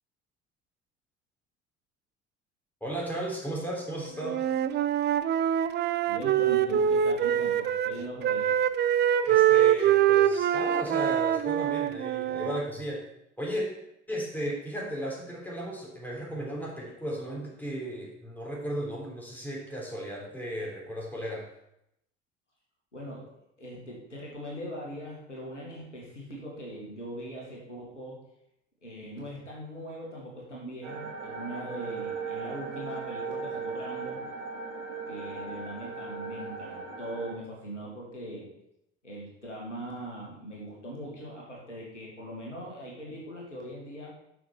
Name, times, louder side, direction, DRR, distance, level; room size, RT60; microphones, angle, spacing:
voice 1, 2.8-4.5 9.3-13.0 13.4-13.7 14.1-21.5, equal, 5° left, -3 dB, 3.5 m, -35 dB
Wind instrument woodwind instrument, 4.2-7.9 8.2-12.6, right 10 dB, 30° right, 0.5 m, -24 dB
voice 2, 6.1-8.5 22.9-23.3 23.6-28.2 28.8-34.2 35.1-38.5 39.0-44.1, right 1 dB, 85° left, -3 dB, 1.9 m, -40 dB
sound 1, 30.8-37.3, right 4 dB, 75° right, 1.8 m, -37 dB
7.8 x 6.1 x 5.8 m, 0.79 s
figure-of-eight pair, 60°, 35 cm